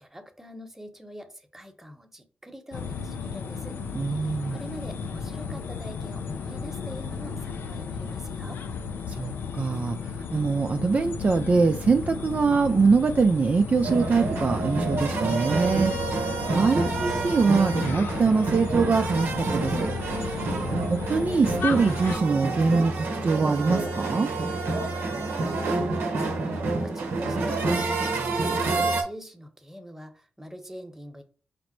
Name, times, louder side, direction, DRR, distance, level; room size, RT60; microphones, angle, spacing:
voice 1, 0.0-3.8 4.1-8.6 25.5-28.1 28.4-31.2, equal, 10° right, 1.1 m, -44 dB
sound 1, 2.7-22.2, left 5 dB, 75° left, 0.5 m, -34 dB
voice 2, 3.9-4.6 9.1-15.9 16.5-19.9 20.9-24.3, right 4 dB, 40° right, 0.4 m, -23 dB
sound 2, 13.8-29.0, right 3 dB, 75° right, 0.8 m, -28 dB
5.0 x 2.0 x 4.4 m
supercardioid pair, 40°, 4 cm